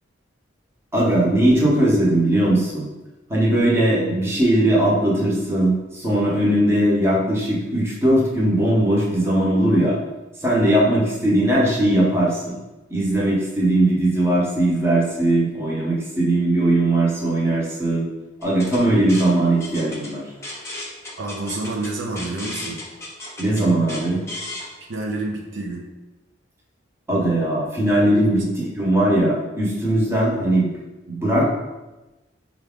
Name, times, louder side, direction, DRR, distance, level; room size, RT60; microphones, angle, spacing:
voice 1, 0.9-2.8 3.3-10.0 10.4-12.5 12.9-18.0 18.4-20.2 23.4-24.2 27.1-28.4 28.7-30.7 31.1-31.5, right 1 dB, 15° right, -6 dB, 0.9 m, -19 dB
sound 1, 18.4-24.7, left 2 dB, 15° left, 0.8 m, -35 dB
voice 2, 21.2-22.8 24.9-25.9 28.1-28.4, right 2 dB, 70° right, -1 dB, 0.6 m, -28 dB
4.5 x 2.4 x 3.6 m, 1.1 s
head